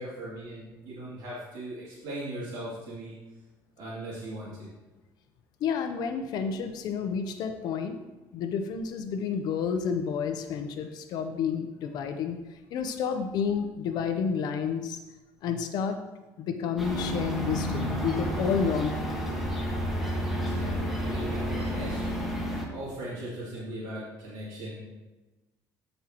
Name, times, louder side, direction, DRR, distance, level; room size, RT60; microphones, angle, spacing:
voice 1, 0.0-3.2 3.8-4.7 20.4-22.0 22.7-24.8, right 1 dB, 75° right, -8 dB, 2.7 m, -39 dB
voice 2, 5.6-8.0 8.3-12.4 12.7-15.0 15.4-16.0 16.4-19.3, left 6 dB, 65° left, 7 dB, 0.7 m, -30 dB
sound 1, 16.8-22.6, equal, ahead, 1.7 m, -30 dB
13.5 x 5.4 x 3.0 m, 1.1 s
cardioid pair, 125°, 7 cm